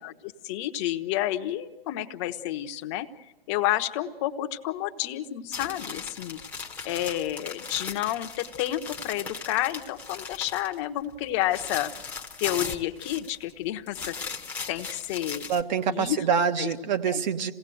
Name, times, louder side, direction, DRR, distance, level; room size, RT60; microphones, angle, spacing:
voice 1, 0.0-3.1 3.5-6.4 6.8-11.9 12.4-14.3 14.7-15.4 15.9-16.3 16.6-16.7 17.0-17.2, left 13 dB, 30° left, 1.0 m, -30 dB
sound 1, 5.5-10.8 11.1-13.5 13.9-15.6, left 5 dB, 5° left, 1.0 m, -38 dB
voice 2, 15.5-17.5, right 7 dB, 45° right, 1.4 m, -26 dB
27.5 x 17.5 x 7.8 m
hypercardioid pair, 145°, 31 cm